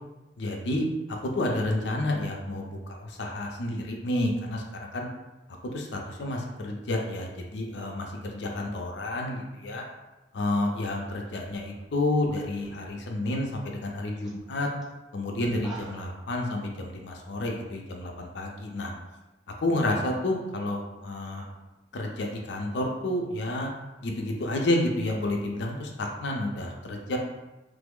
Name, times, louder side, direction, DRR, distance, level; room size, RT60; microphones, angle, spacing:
voice 1, 0.4-5.1 5.6-9.8 10.3-14.7 15.1-18.9 19.6-21.5 21.9-23.7 24.0-27.2, left 1 dB, 70° left, 1 dB, 0.5 m, -30 dB
sound 1, 10.8-12.8 13.1-13.5 13.9-14.0 14.2-14.4 14.8-14.9 15.4-16.2, right 3 dB, 5° right, 0.6 m, -48 dB
3.1 x 2.0 x 3.6 m, 1.0 s
head